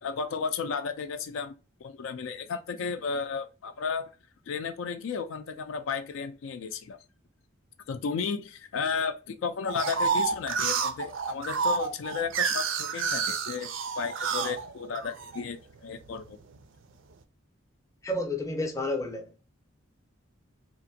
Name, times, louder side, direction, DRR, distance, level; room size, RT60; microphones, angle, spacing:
voice 1, 0.0-1.5 1.8-4.1 4.5-7.0 7.9-16.4, left 5 dB, 75° left, 0.3 m, -33 dB
sound 1, 9.7-15.4 15.9-16.6, right 5 dB, 70° right, 0.4 m, -29 dB
voice 2, 18.0-19.4, left 1 dB, 15° left, 0.5 m, -31 dB
2.9 x 2.5 x 2.6 m
head